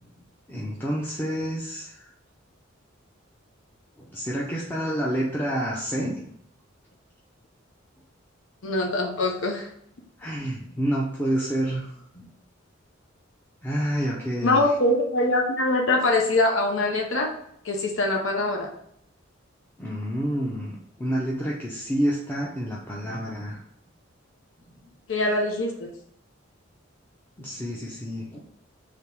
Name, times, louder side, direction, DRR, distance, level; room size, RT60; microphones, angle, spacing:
voice 1, 0.5-2.1 4.0-6.3 10.2-12.3 13.6-14.6 19.8-23.6 27.4-28.4, equal, 10° left, -5 dB, 0.5 m, -29 dB
voice 2, 8.6-9.7 14.4-17.3 17.6-18.7 25.1-25.9, left 2 dB, 75° left, 1 dB, 0.7 m, -23 dB
3.4 x 2.9 x 4.6 m, 0.69 s
head